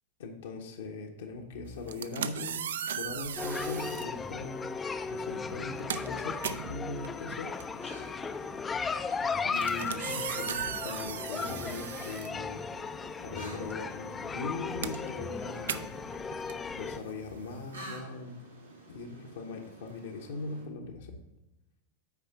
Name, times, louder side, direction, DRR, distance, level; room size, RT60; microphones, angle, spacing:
voice 1, 0.2-7.5 9.4-12.7 13.2-16.0 16.7-18.3 18.9-21.2, left 3 dB, 60° left, 1 dB, 0.8 m, -40 dB
sound 1, 1.8-4.1 5.0-5.2 5.5-13.0 13.3-18.0, right 9 dB, 60° right, 0.3 m, -38 dB
sound 2, 3.4-17.0, left 5 dB, 15° left, 0.3 m, -36 dB
sound 3, 5.2-20.7, right 2 dB, 80° right, 1.6 m, -52 dB
8.3 x 4.9 x 4.4 m, 0.96 s
figure-of-eight pair, 90°, 0 cm